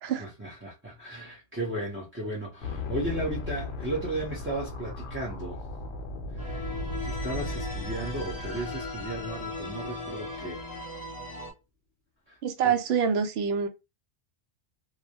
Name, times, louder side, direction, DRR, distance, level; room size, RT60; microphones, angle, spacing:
voice 1, 0.2-5.6 6.4-6.7 7.0-10.6 12.3-12.4 12.6-12.7, right 1 dB, 15° right, 0.5 m, -35 dB
sound 1, 2.6-10.7, left 2 dB, 65° left, 0.8 m, -37 dB
sound 2, 6.4-11.5, left 2 dB, 20° left, 0.8 m, -38 dB
voice 2, 12.4-13.7, right 7 dB, 65° right, 0.8 m, -26 dB
2.3 x 2.1 x 2.7 m
omnidirectional pair, 1.2 m